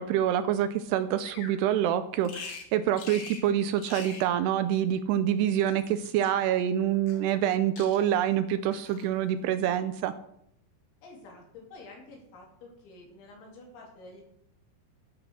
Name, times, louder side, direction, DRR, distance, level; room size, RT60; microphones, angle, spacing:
voice 1, 0.0-10.1, right 10 dB, 80° right, 11 dB, 2.5 m, -26 dB
Bird vocalization bird call bird song, 1.2-1.6 2.2-2.7 3.0-3.5 3.8-4.3 5.3-6.3 7.1-7.5 7.8-8.2 8.7-9.1, left 5 dB, 65° left, 3.8 m, -44 dB
voice 2, 11.0-14.2, left 2 dB, 90° left, 0 dB, 5.7 m, -49 dB
13.5 x 9.0 x 6.3 m, 0.75 s
omnidirectional pair, 5.1 m